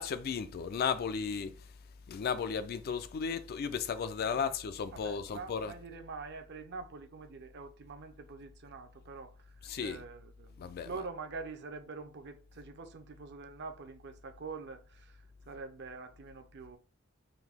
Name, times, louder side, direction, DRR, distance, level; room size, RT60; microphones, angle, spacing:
voice 1, 0.0-1.5 2.1-5.7 9.7-10.0 10.6-10.9, left 6 dB, 50° left, 0.3 m, -34 dB
voice 2, 4.9-16.8, right 4 dB, 55° right, 0.6 m, -45 dB
3.8 x 2.6 x 3.4 m
head